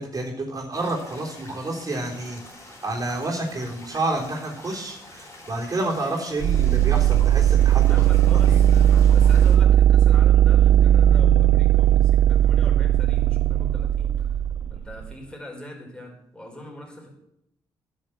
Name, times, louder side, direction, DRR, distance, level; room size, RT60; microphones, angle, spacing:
voice 1, 0.0-2.4 2.8-7.8 8.5-8.6, right 2 dB, 40° right, -1 dB, 3.4 m, -29 dB
sound 1, 0.7-9.6, left 2 dB, 30° left, 4.6 m, -45 dB
sound 2, 6.4-15.1, right 11 dB, 65° right, 0.4 m, -17 dB
voice 2, 7.9-14.3 14.7-17.1, left 1 dB, 10° left, -1 dB, 4.7 m, -42 dB
10.5 x 6.4 x 7.8 m, 0.80 s
supercardioid pair, 65°, 10 cm